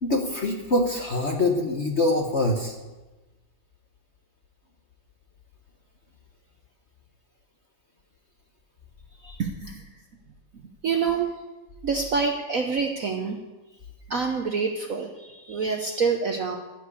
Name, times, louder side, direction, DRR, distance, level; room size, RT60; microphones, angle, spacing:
voice 1, 0.0-2.8, left 2 dB, 40° left, 2 dB, 1.1 m, -24 dB
voice 2, 9.2-9.8 10.8-11.3 11.8-13.4 14.1-16.6, right 5 dB, 55° right, 3 dB, 1.0 m, -27 dB
15.0 x 6.2 x 8.3 m, 1.1 s
omnidirectional pair, 2.3 m